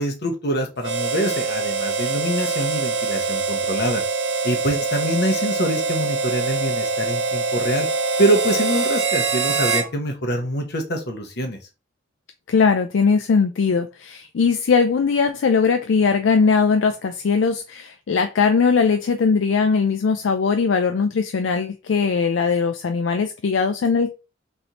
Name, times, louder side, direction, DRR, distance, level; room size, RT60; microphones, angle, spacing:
voice 1, 0.0-4.0 4.4-7.9 8.2-11.6, right 1 dB, 60° left, 1.0 m, -24 dB
Harmonica, 0.8-9.9, right 4 dB, 60° right, 0.7 m, -24 dB
voice 2, 12.5-24.1, left 5 dB, 75° left, 0.4 m, -20 dB
4.0 x 3.4 x 2.9 m
head